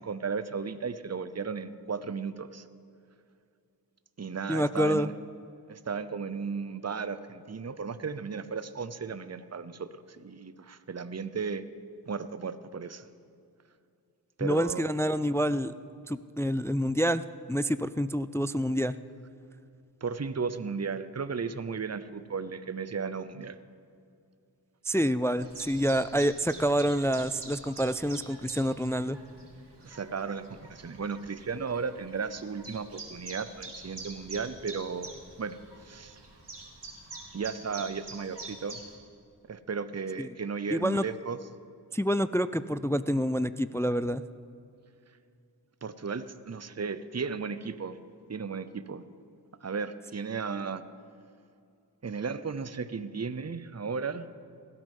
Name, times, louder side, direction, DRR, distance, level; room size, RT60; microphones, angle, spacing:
voice 1, 0.0-2.6 4.2-5.1 5.7-11.6 12.1-13.1 14.4-15.0 20.0-23.6 29.8-35.6 35.8-36.2 37.3-38.8 39.5-41.4 45.8-48.0 48.3-49.0 49.6-50.8 52.0-54.2, right 5 dB, 40° right, 13 dB, 0.7 m, -35 dB
voice 2, 4.5-5.1 14.4-15.7 16.1-18.9 24.9-29.2 40.2-40.3 40.7-41.0 41.9-44.2, equal, 5° left, 14 dB, 0.3 m, -27 dB
Chirp tweet, 25.4-39.0, right 2 dB, 75° right, 2.3 m, -47 dB
17.5 x 12.5 x 5.4 m, 2.5 s
wide cardioid pair, 40°, 42 cm